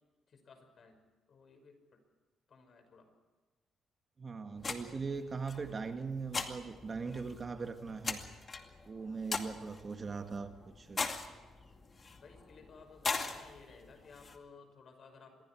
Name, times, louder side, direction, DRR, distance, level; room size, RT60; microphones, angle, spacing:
voice 1, 0.3-1.0 1.3-2.0 2.5-3.1 10.2-10.5 12.2-15.4, left 4 dB, 55° left, 6 dB, 5.6 m, -57 dB
voice 2, 4.2-8.2 8.9-11.1, right 4 dB, 35° right, 7 dB, 1.8 m, -40 dB
sound 1, 4.6-14.4, left 4 dB, 35° left, 2.3 m, -41 dB
26.5 x 22.0 x 4.7 m, 1.3 s
cardioid pair, 90°, 0 cm